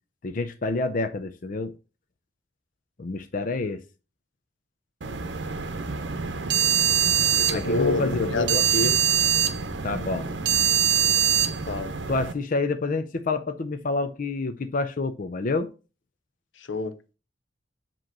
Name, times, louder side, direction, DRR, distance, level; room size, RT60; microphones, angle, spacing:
voice 1, 0.2-1.7 3.0-3.8 7.5-8.6 9.8-10.3 12.1-15.7, left 3 dB, 45° left, 0.5 m, -28 dB
sound 1, 5.0-12.3, right 9 dB, 65° right, 0.8 m, -24 dB
voice 2, 7.4-9.0 11.5-11.9 16.6-16.9, left 2 dB, 85° left, 0.8 m, -28 dB
7.5 x 3.0 x 5.9 m
head